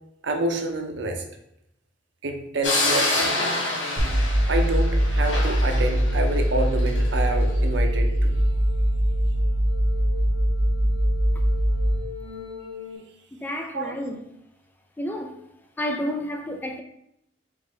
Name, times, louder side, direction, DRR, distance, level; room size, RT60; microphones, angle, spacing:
voice 1, 0.2-1.2 2.2-3.4 4.5-8.4 13.7-14.0, right 2 dB, 80° right, 0.6 m, -28 dB
sound 1, 2.6-7.1, left 2 dB, 80° left, 1.4 m, -27 dB
sound 2, 4.0-13.0, equal, 25° right, 1.0 m, -22 dB
voice 2, 13.3-14.3 15.0-15.4 15.8-16.8, equal, 10° left, 0.3 m, -30 dB
3.6 x 3.2 x 3.7 m
head